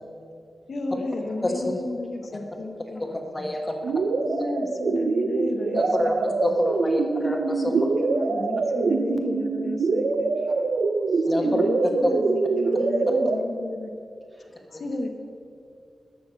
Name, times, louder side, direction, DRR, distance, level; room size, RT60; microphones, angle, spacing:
voice 1, 0.7-3.0 4.2-6.3 7.7-10.3 11.3-13.9 14.8-15.1, left 2 dB, 65° left, 4 dB, 1.1 m, -32 dB
voice 2, 1.4-1.7 3.0-3.1 3.3-3.7 5.7-7.8 11.3-11.6 12.0-12.1, left 1 dB, 20° left, 2 dB, 1.5 m, -27 dB
voice 3, 2.1-3.7 4.3-4.4 5.8-5.9 7.0-7.1 7.5-7.6 8.0-8.3 8.8-9.0 10.3-12.0 12.6-13.2 14.3-14.8, equal, 25° right, -1 dB, 2.3 m, -52 dB
sound 1, 3.8-13.4, right 4 dB, 80° right, 0.6 m, -24 dB
12.5 x 6.3 x 7.6 m, 2.4 s
wide cardioid pair, 100°, 0 cm